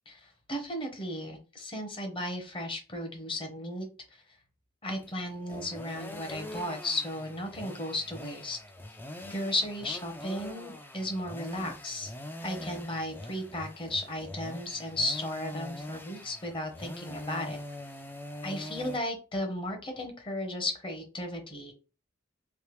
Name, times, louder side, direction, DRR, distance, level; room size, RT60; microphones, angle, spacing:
voice 1, 0.5-3.9 4.8-8.6 9.3-12.1 12.4-17.6 18.4-21.7, left 1 dB, 25° left, 4 dB, 0.9 m, -35 dB
sound 1, 4.9-19.0, left 1 dB, 10° left, 0.4 m, -43 dB
3.3 x 2.7 x 3.1 m, 0.32 s
head